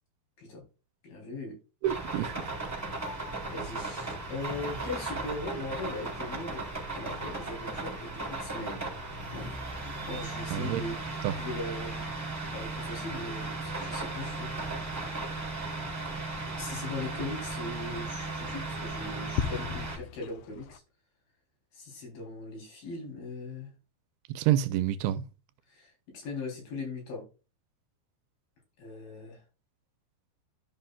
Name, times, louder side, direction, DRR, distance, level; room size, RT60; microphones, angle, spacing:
voice 1, 1.0-1.6 3.5-8.9 9.3-9.6 10.1-10.9 11.4-12.1 12.5-14.5 16.6-20.8 21.7-23.7 25.7-27.3 28.8-29.4, left 2 dB, 70° left, 5.2 m, -39 dB
sound 1, 1.8-20.0, right 3 dB, 5° right, 3.3 m, -36 dB
voice 2, 1.8-2.5 10.5-10.8 11.2-11.3 24.3-25.2, right 12 dB, 85° right, 2.4 m, -28 dB
sound 2, 5.3-20.8, left 9 dB, 85° left, 1.9 m, -45 dB
13.5 x 5.6 x 2.3 m
omnidirectional pair, 4.4 m